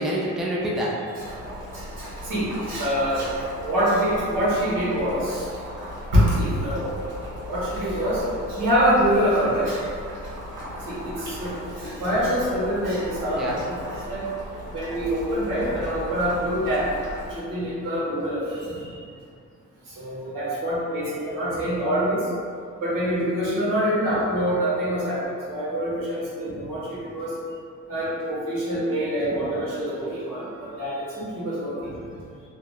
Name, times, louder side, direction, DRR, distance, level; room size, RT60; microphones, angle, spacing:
voice 1, 0.0-1.2 13.4-13.6 15.7-15.8 18.7-18.8 26.5-26.7 29.3-29.4 31.9-32.1, equal, ahead, -5 dB, 0.4 m, -28 dB
Boiling, 1.2-17.3, equal, 35° right, 1.4 m, -37 dB
voice 2, 1.7-3.4 3.6-5.5 6.1-6.9 7.3-8.2 8.5-10.5 10.8-14.2 14.7-16.9 17.2-19.0 20.0-22.2 22.8-27.3 27.9-31.9, equal, 80° right, -8 dB, 1.1 m, -25 dB
2.8 x 2.0 x 2.4 m, 2.3 s
cardioid pair, 85°, 33 cm